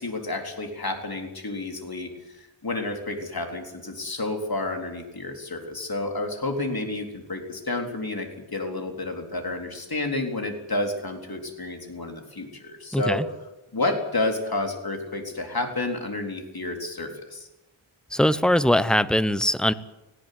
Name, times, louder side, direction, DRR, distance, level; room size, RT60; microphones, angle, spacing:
voice 1, 0.0-2.1 2.6-13.2 13.7-17.5, left 2 dB, 50° left, 3 dB, 4.0 m, -30 dB
voice 2, 12.9-13.3 18.1-19.7, left 1 dB, ahead, 13 dB, 0.9 m, -21 dB
19.0 x 16.5 x 9.5 m, 0.98 s
wide cardioid pair, 90°, 48 cm